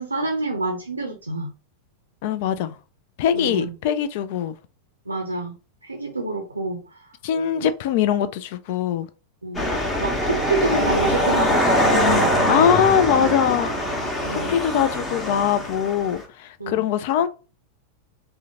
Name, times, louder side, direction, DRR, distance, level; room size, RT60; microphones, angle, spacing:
voice 1, 0.0-1.5 3.3-3.7 5.1-5.6 5.8-6.8 7.6-7.7 9.4-9.7 10.0-12.4 14.2-14.5 16.6-16.8, right 3 dB, 80° right, 0.5 m, -27 dB
voice 2, 2.2-2.8 3.2-4.5 7.2-9.1 12.5-13.7 14.3-17.3, left 9 dB, 50° left, 0.3 m, -22 dB
sound 1, 9.5-16.2, equal, 15° left, 0.9 m, -22 dB
3.6 x 2.1 x 2.8 m
figure-of-eight pair, 90°, 0 cm